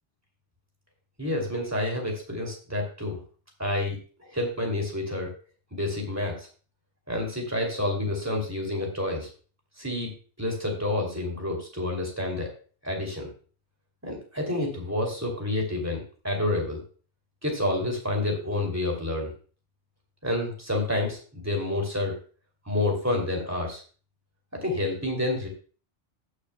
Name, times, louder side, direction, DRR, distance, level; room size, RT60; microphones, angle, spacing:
voice 1, 1.2-3.2 3.6-5.3 5.7-6.5 7.1-9.3 9.8-10.1 10.4-12.5 12.8-13.3 14.0-16.8 17.4-19.3 20.2-22.2 22.7-23.8 24.6-25.5, left 1 dB, 15° right, 0 dB, 2.6 m, -29 dB
18.5 x 6.5 x 2.2 m, 0.39 s
omnidirectional pair, 1.2 m